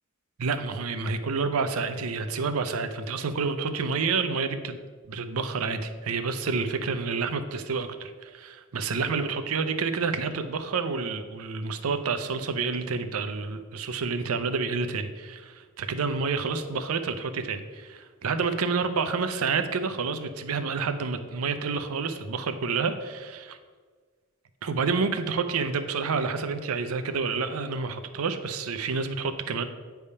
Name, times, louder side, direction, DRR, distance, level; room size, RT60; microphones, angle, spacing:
voice 1, 0.4-4.8 5.1-15.5 15.8-23.6 24.6-29.6, right 4 dB, 85° right, 9 dB, 0.6 m, -29 dB
8.2 x 3.5 x 5.5 m, 1.5 s
head